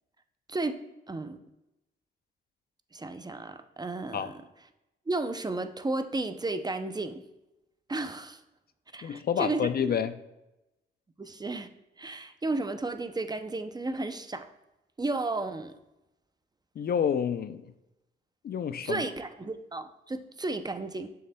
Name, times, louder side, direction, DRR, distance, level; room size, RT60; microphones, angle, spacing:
voice 1, 1.1-1.4 2.9-4.4 5.1-7.2 7.9-8.4 8.9-10.0 11.2-11.7 12.0-14.5 15.0-15.7 18.8-21.1, right 2 dB, 20° right, 0.5 m, -33 dB
voice 2, 9.0-10.1 16.8-17.6 18.4-19.0, left 8 dB, 50° left, 0.4 m, -28 dB
6.8 x 6.5 x 2.2 m
cardioid pair, 70°, 21 cm